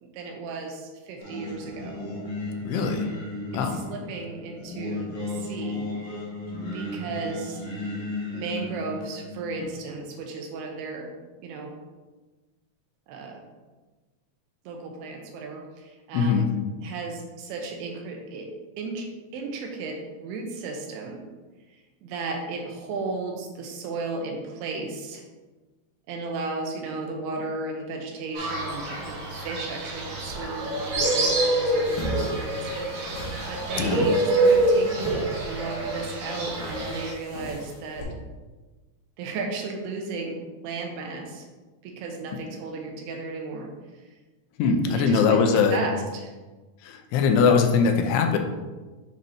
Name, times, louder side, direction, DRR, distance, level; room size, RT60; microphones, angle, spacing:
voice 1, 0.0-2.0 3.5-5.9 6.7-7.7 8.3-11.1 11.4-11.7 13.1-13.4 14.7-16.5 16.8-18.5 18.8-21.2 22.0-25.2 26.1-32.9 33.5-38.1 39.2-41.5 41.8-43.7 44.9-46.3, right 3 dB, 80° right, 2 dB, 2.8 m, -35 dB
Singing, 1.2-9.7, left 2 dB, 45° left, 1.9 m, -34 dB
voice 2, 2.7-3.1 3.5-3.8 16.1-16.5 33.8-34.1 44.6-45.8 46.8-48.4, left 5 dB, 90° left, 5 dB, 2.7 m, -21 dB
Fowl, 28.4-37.1, right 2 dB, 65° right, 2.6 m, -26 dB
sound 1, 31.8-38.0, right 1 dB, 65° left, 3.0 m, -37 dB
7.8 x 5.2 x 2.8 m, 1.3 s
omnidirectional pair, 4.6 m